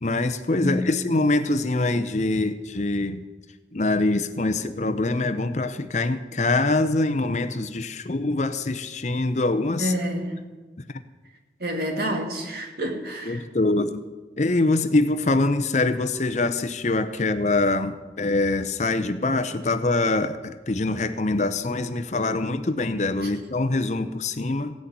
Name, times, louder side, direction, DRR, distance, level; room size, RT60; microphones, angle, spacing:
voice 1, 0.0-3.2 3.7-9.9 13.3-14.0 14.4-24.7, left 2 dB, 40° left, 10 dB, 0.7 m, -24 dB
voice 2, 0.6-1.0 9.8-10.4 11.6-13.5 23.2-23.3, equal, 55° right, 2 dB, 2.4 m, -28 dB
16.0 x 6.4 x 9.5 m, 1.2 s
head